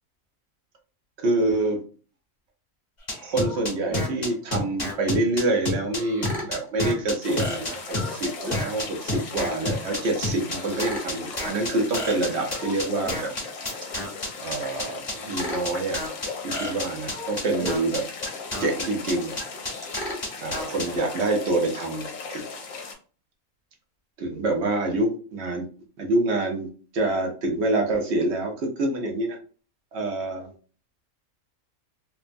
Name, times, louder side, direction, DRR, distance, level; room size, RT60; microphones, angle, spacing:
voice 1, 1.2-1.8 3.2-13.3 14.4-16.0 16.4-18.1 18.6-19.3 20.4-22.4 24.2-25.6 26.0-26.7 26.9-29.4 29.9-30.5, right 2 dB, 55° right, 2 dB, 0.9 m, -26 dB
sound 1, 3.1-20.8, left 1 dB, 30° left, 1.4 m, -29 dB
sound 2, 7.2-22.9, left 4 dB, 60° left, 0.9 m, -38 dB
3.2 x 2.1 x 2.5 m, 0.39 s
omnidirectional pair, 1.5 m